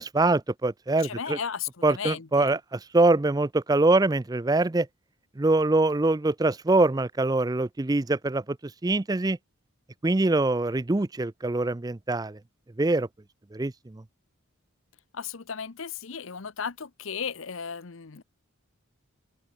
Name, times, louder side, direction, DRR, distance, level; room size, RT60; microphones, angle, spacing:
voice 1, 0.0-1.4 1.8-4.9 5.4-8.6 8.8-9.4 10.0-12.4 12.8-13.1 13.5-14.0, right 2 dB, 15° right, 0.4 m, -24 dB
voice 2, 1.0-2.6 15.1-18.2, left 7 dB, 65° left, 0.8 m, -35 dB
open air
head